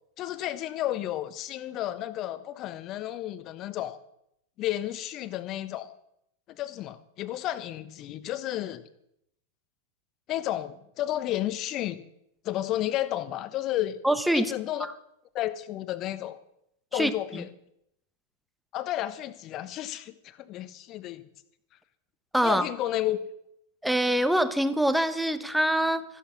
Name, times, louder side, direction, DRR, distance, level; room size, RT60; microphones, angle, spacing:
voice 1, 0.2-4.0 4.6-5.9 6.5-8.8 10.3-12.0 12.4-14.0 14.3-14.9 15.3-16.4 16.9-17.5 18.7-21.2 22.4-23.2, left 13 dB, 35° left, 13 dB, 1.2 m, -32 dB
voice 2, 14.0-14.5 14.8-14.9 16.9-17.4 22.3-22.6 23.8-26.0, right 1 dB, ahead, 11 dB, 1.1 m, -25 dB
14.5 x 11.5 x 5.7 m, 0.76 s
figure-of-eight pair, 90°, 0 cm